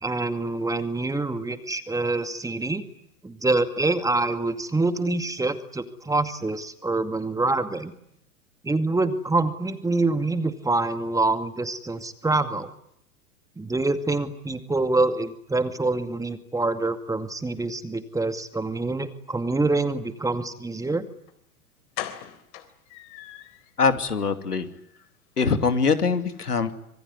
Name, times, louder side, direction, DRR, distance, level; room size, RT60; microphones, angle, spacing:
voice 1, 0.0-2.8 3.2-7.9 8.6-12.7 13.6-21.0, right 2 dB, 5° right, 9 dB, 2.3 m, -26 dB
sound 1, 21.3-21.4 21.9-23.7 24.1-24.2 24.5-24.7 25.0-25.1, left 13 dB, 50° left, 3.8 m, -38 dB
voice 2, 23.8-24.7 25.4-26.7, left 5 dB, 85° left, 9 dB, 2.7 m, -23 dB
26.5 x 23.0 x 9.8 m, 0.74 s
hypercardioid pair, 105°, 45 cm